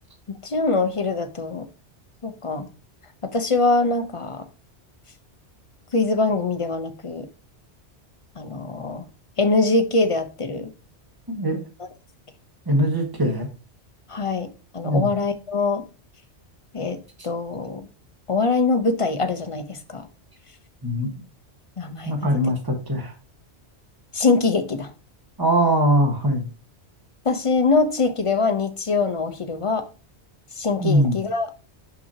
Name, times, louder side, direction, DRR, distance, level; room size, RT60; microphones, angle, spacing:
voice 1, 0.3-1.6 2.2-2.7 3.3-4.4 5.9-7.3 8.4-9.0 9.4-10.7 11.8-11.9 14.1-14.5 14.7-15.8 16.7-17.0 17.2-17.9 18.3-20.1 21.8-22.2 24.1-24.9 27.2-29.8 30.6-31.5, left 3 dB, 35° left, 0.6 m, -23 dB
voice 2, 11.3-11.6 12.7-13.5 14.8-15.1 20.8-21.1 22.0-23.1 25.4-26.5 30.8-31.2, equal, 20° right, 1.4 m, -21 dB
6.2 x 5.8 x 2.8 m
omnidirectional pair, 1.2 m